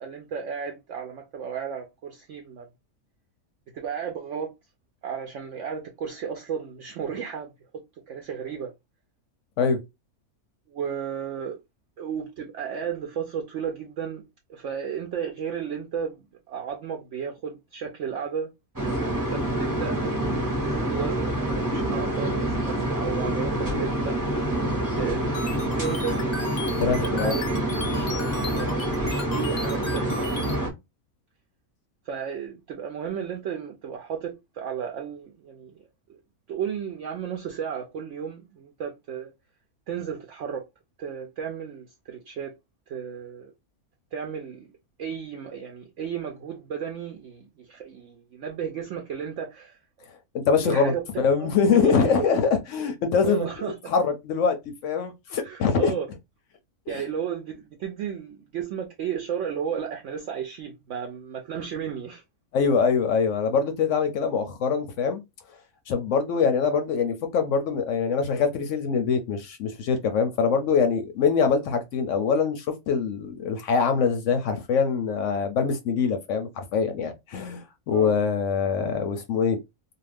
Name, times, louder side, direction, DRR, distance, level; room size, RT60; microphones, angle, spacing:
voice 1, 0.0-2.7 3.7-4.5 5.0-8.7 10.7-11.6 12.0-14.2 14.5-18.5 19.1-20.3 20.6-24.2 24.9-25.2 25.8-26.2 26.7-27.6 27.9-30.3 32.0-35.9 36.5-39.3 39.9-40.6 41.0-42.5 42.9-43.5 44.1-44.7 45.0-49.8 50.6-51.0 51.4-52.3 53.2-53.9 55.4-56.1 56.9-62.2 77.9-78.2, right 7 dB, 65° right, 0.8 m, -34 dB
sound 1, 18.8-30.7, right 1 dB, 20° right, 0.7 m, -27 dB
sound 2, 25.3-30.6, left 3 dB, 40° left, 0.7 m, -37 dB
voice 2, 26.8-27.3 50.5-53.5 53.9-54.6 54.8-55.9 56.9-57.0 62.5-65.2 65.9-79.6, left 5 dB, 65° left, 0.8 m, -24 dB
2.5 x 2.4 x 3.2 m
omnidirectional pair, 1.5 m